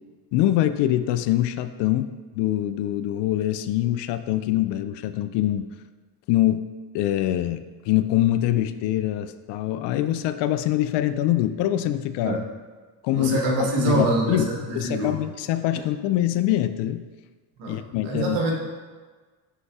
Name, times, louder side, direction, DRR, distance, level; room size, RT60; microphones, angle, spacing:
voice 1, 0.3-5.7 6.3-6.6 6.9-12.4 13.0-14.5 14.7-17.0 17.7-18.4, left 13 dB, 60° left, 11 dB, 0.5 m, -24 dB
voice 2, 13.1-15.2 17.6-17.8 18.0-18.5, right 2 dB, 75° right, -1 dB, 1.5 m, -25 dB
11.0 x 3.8 x 2.4 m, 1.4 s
hypercardioid pair, 60°, 48 cm